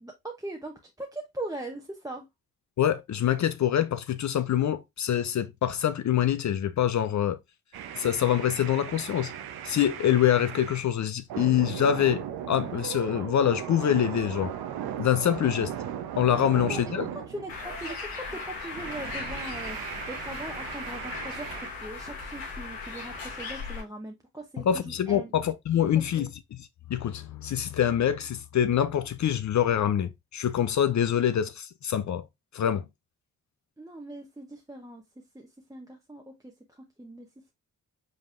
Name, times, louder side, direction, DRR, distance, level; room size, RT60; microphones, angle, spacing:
voice 1, 0.0-2.3 16.3-16.8 17.1-25.3 25.9-26.3 33.8-37.5, right 1 dB, 10° right, 0.8 m, -40 dB
voice 2, 2.8-7.4 8.0-9.3 9.6-14.5 15.0-15.7 16.2-17.0 24.7-32.3 32.5-32.8, left 10 dB, 55° left, 0.5 m, -25 dB
sound 1, 7.7-10.9 11.3-18.0 18.7-21.7, right 9 dB, 85° right, 0.6 m, -37 dB
Bird, 17.5-23.8, left 4 dB, 85° left, 1.8 m, -38 dB
5.3 x 3.5 x 2.4 m
supercardioid pair, 45°, 36 cm